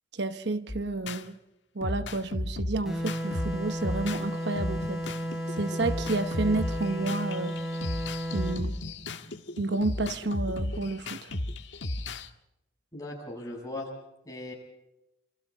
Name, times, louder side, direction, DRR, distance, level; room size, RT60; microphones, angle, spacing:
voice 1, 0.1-1.3 1.7-5.0 5.6-7.6 8.3-8.8 9.6-11.4, right 2 dB, 65° right, 1.0 m, -30 dB
sound 1, 0.7-1.2 1.8-4.3 4.6-12.3, left 1 dB, 80° left, 1.5 m, -34 dB
sound 2, 2.8-8.7, equal, ahead, 6.0 m, -33 dB
voice 2, 12.9-13.9 14.3-14.5, left 2 dB, 20° left, 7.1 m, -38 dB
28.5 x 27.5 x 3.6 m
head